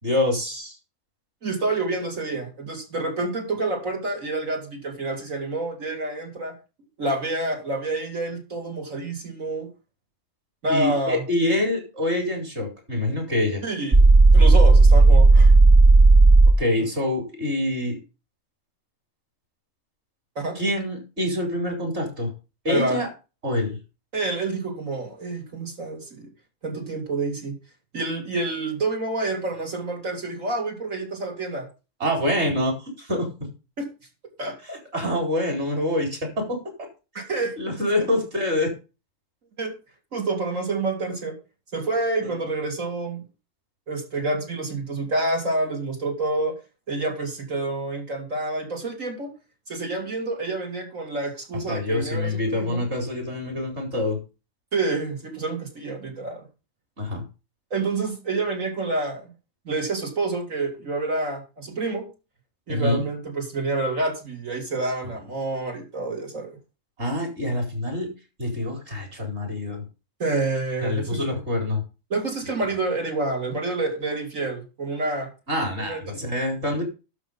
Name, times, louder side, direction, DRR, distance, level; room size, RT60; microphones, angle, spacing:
voice 1, 0.0-0.8 10.7-13.6 16.6-18.0 20.5-22.3 22.6-23.1 23.4-23.8 32.0-33.3 34.6-36.6 37.6-38.7 42.2-42.4 51.7-54.2 57.0-57.2 62.7-63.0 67.0-68.1 68.4-69.8 70.8-71.8 75.5-76.8, left 1 dB, 55° right, 2 dB, 4.8 m, -26 dB
voice 2, 1.4-6.5 7.0-9.7 10.6-11.2 13.6-14.0 14.3-15.5 20.4-20.6 22.7-23.0 24.1-26.3 26.6-27.6 27.9-31.7 33.8-33.9 34.4-34.8 37.2-37.6 39.6-39.7 40.1-41.4 41.7-43.2 43.9-46.5 46.9-49.3 49.7-52.8 54.7-56.4 57.7-59.3 59.7-62.1 62.7-66.6 70.2-71.4 72.1-75.3 75.8-76.0, right 2 dB, 80° right, 2 dB, 3.7 m, -28 dB
sound 1, 13.9-16.5, right 3 dB, 35° right, 0.8 m, -12 dB
12.0 x 6.4 x 5.6 m, 0.30 s
omnidirectional pair, 1.4 m